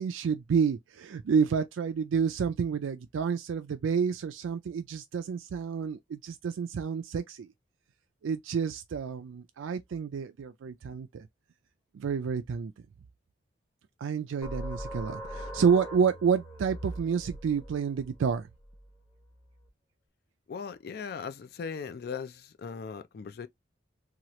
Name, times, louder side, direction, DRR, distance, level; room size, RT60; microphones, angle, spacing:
voice 1, 0.0-7.5 8.2-11.3 11.9-12.7 14.0-18.5, right 6 dB, 90° right, 0.4 m, -29 dB
sound 1, 14.4-19.7, equal, 10° left, 0.9 m, -42 dB
voice 2, 20.5-23.5, left 6 dB, 50° left, 0.3 m, -38 dB
2.9 x 2.4 x 2.9 m
head